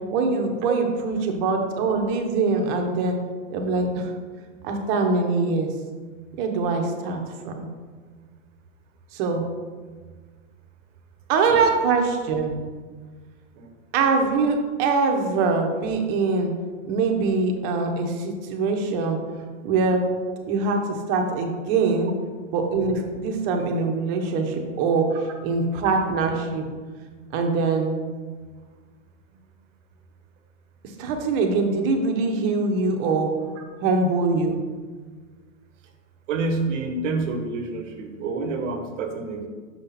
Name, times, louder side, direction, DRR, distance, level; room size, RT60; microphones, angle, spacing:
voice 1, 0.1-3.2 3.5-4.0 4.6-5.7 6.4-7.2 7.4-7.7 9.1-9.4 11.3-12.6 13.9-16.5 16.8-19.2 19.6-20.0 20.5-20.8 21.1-22.1 22.5-25.1 25.4-26.6 27.3-27.9 31.0-33.3 33.8-34.7, right 4 dB, 40° right, 3 dB, 1.2 m, -23 dB
voice 2, 36.3-39.5, right 3 dB, 65° right, 6 dB, 1.3 m, -28 dB
6.5 x 5.8 x 4.3 m, 1.5 s
hypercardioid pair, 125°, 40 cm